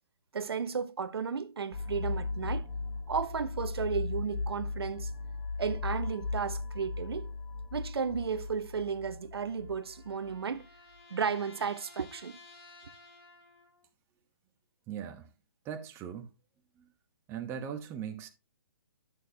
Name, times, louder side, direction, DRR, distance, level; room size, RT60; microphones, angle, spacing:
voice 1, 0.3-2.7 3.1-5.1 5.6-7.3 7.7-10.7 11.1-12.4, right 6 dB, 80° right, 0.8 m, -34 dB
sound 1, 1.7-10.4, left 3 dB, 20° left, 1.2 m, -37 dB
sound 2, 9.1-13.8, left 3 dB, 80° left, 2.7 m, -56 dB
voice 2, 14.9-15.3 15.6-16.3 16.8-16.9 17.3-18.3, right 8 dB, 20° right, 0.9 m, -39 dB
11.0 x 6.4 x 2.8 m
hypercardioid pair, 145°, 13 cm